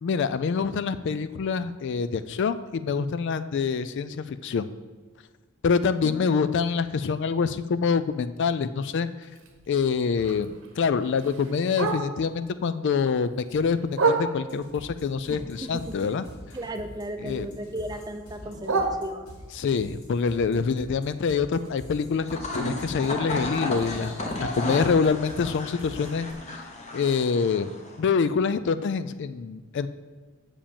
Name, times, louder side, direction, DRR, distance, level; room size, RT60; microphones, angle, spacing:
voice 1, 0.0-4.7 5.6-9.1 9.7-16.2 17.2-17.5 19.6-22.3 22.5-26.7 26.9-27.7 28.0-29.9, left 5 dB, 55° left, 13 dB, 0.3 m, -26 dB
Bark, 9.2-12.4 12.8-14.7 15.2-17.0 17.3-19.6 20.0-24.0 24.3-24.4 24.7-25.1 25.5-25.6 26.0-26.1 26.6-26.7, right 3 dB, 60° right, 1.0 m, -33 dB
sound 1, 14.5-26.3, equal, 85° left, 2.5 m, -45 dB
voice 2, 15.6-16.1 16.5-19.3, right 1 dB, 15° right, 6 dB, 0.6 m, -36 dB
sound 2, 22.2-28.0, left 1 dB, 30° left, 1.1 m, -33 dB
7.1 x 5.1 x 7.0 m, 1.4 s
head